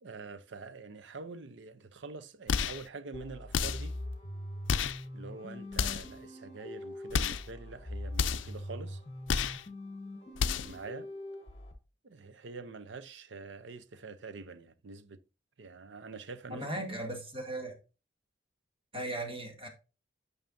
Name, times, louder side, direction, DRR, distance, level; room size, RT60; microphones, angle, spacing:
voice 1, 0.0-4.0 5.1-9.0 10.6-11.1 12.0-15.2 15.6-16.8, right 3 dB, 70° right, 0.6 m, -46 dB
sound 1, 2.5-2.9 3.5-3.9 4.7-5.0 5.7-6.2 7.1-7.5 8.1-8.6 9.3-9.6 10.3-10.8, left 6 dB, 75° left, 0.4 m, -31 dB
sound 2, 3.1-11.7, left 1 dB, 35° left, 1.3 m, -42 dB
voice 2, 16.5-17.7 18.9-19.7, right 1 dB, 30° right, 1.9 m, -37 dB
9.1 x 5.6 x 2.6 m
head